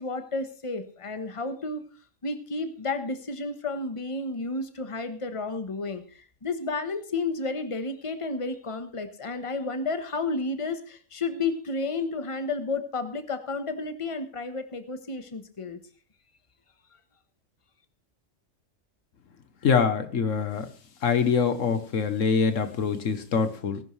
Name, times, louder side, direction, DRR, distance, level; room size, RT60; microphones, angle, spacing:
voice 1, 0.0-1.8 2.2-15.8, left 3 dB, 25° left, 8 dB, 1.2 m, -31 dB
voice 2, 19.6-20.7 21.0-23.8, left 5 dB, 80° left, 10 dB, 1.4 m, -24 dB
19.5 x 11.0 x 3.3 m, 0.42 s
omnidirectional pair, 1.3 m